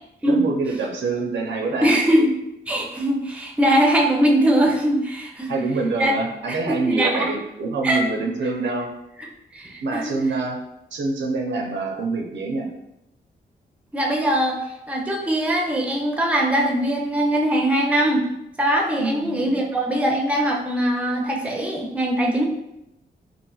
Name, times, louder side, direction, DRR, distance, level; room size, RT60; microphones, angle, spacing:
voice 1, 0.2-1.9 5.5-8.9 9.8-10.6 10.9-12.7 19.0-19.6, right 3 dB, 80° right, 1 dB, 0.5 m, -26 dB
voice 2, 1.8-2.3 2.7-5.5 6.0-6.1 6.5-6.6 6.9-7.3 7.8-8.0 9.2-9.3 9.5-10.1 13.9-14.6 14.9-18.3 18.6-22.4, right 1 dB, 5° right, 0 dB, 0.5 m, -21 dB
2.9 x 2.4 x 2.3 m, 0.85 s
cardioid pair, 65°, 19 cm